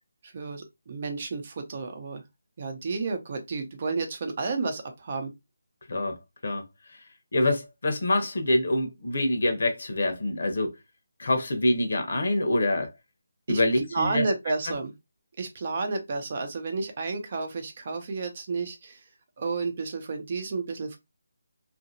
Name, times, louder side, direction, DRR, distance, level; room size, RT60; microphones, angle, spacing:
voice 1, 0.2-2.2 2.6-5.3 13.5-13.6 13.9-14.9 15.4-19.0 19.4-21.0, right 4 dB, 40° right, 0.7 m, -31 dB
voice 2, 7.3-10.7 11.2-12.9 13.5-14.2, left 1 dB, 65° left, 0.9 m, -25 dB
2.8 x 2.6 x 2.6 m
figure-of-eight pair, 160°, 0 cm